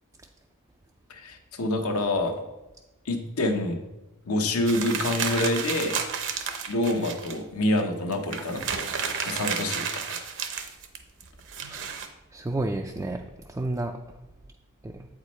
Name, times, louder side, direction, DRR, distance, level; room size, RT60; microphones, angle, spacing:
voice 1, 1.1-2.3 3.0-3.8 4.3-6.0 6.7-8.7 9.3-10.2, left 1 dB, 70° left, 5 dB, 1.0 m, -27 dB
sound 1, 4.7-7.4 7.8-7.9 8.1-12.1, right 6 dB, 55° right, 0.7 m, -31 dB
voice 2, 11.6-12.0 12.3-14.0 14.8-15.1, right 2 dB, 15° right, 2 dB, 0.3 m, -31 dB
8.4 x 4.9 x 4.2 m, 1.0 s
head